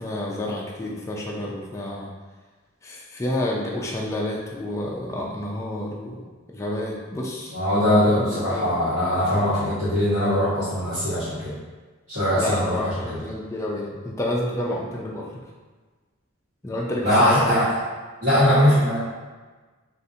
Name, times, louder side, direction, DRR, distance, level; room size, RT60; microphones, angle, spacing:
voice 1, 0.0-2.1 2.8-6.2 6.5-7.5 8.0-8.7 12.3-15.2 16.6-17.6, left 1 dB, 15° left, -3 dB, 0.4 m, -29 dB
voice 2, 7.5-11.5 12.1-13.2 17.0-17.6 18.2-19.0, equal, 50° right, -16 dB, 1.4 m, -21 dB
3.7 x 2.5 x 2.7 m, 1.3 s
head